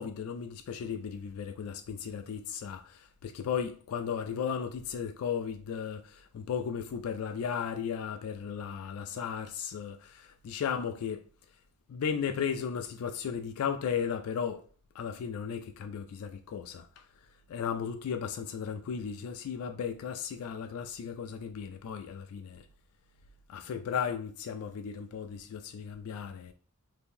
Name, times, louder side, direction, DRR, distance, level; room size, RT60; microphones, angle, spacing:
voice 1, 0.0-11.2 11.9-14.7 14.9-22.7 23.5-26.5, left 7 dB, 85° left, 0.3 m, -35 dB
2.7 x 2.6 x 3.6 m
head